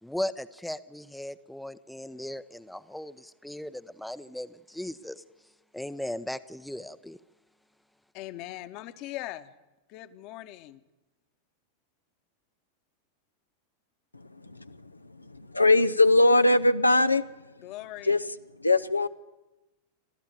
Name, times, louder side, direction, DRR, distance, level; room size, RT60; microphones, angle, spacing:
voice 1, 0.0-5.2 5.7-7.2, left 1 dB, ahead, 0.7 m, -37 dB
voice 2, 8.1-9.5 9.9-10.8 17.6-18.2, left 15 dB, 40° left, 1.2 m, -40 dB
voice 3, 15.5-17.2 18.0-18.2 18.6-19.1, left 2 dB, 85° left, 0.7 m, -20 dB
28.5 x 13.0 x 9.1 m
figure-of-eight pair, 90°, 0 cm